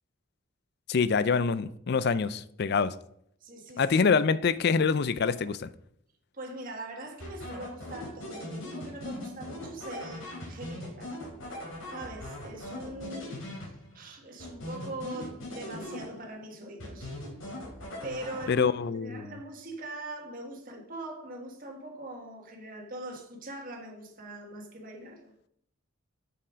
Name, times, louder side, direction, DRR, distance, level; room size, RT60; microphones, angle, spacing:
voice 1, 0.9-2.9 3.8-5.7 18.5-19.3, left 5 dB, 50° left, 0.4 m, -25 dB
voice 2, 3.4-4.1 6.3-11.1 11.9-17.2 18.0-18.7 18.9-25.3, right 1 dB, 40° right, 1.6 m, -42 dB
sound 1, 7.2-14.0 14.4-16.4 16.8-18.8, left 1 dB, 70° left, 3.7 m, -40 dB
7.3 x 6.9 x 5.0 m
head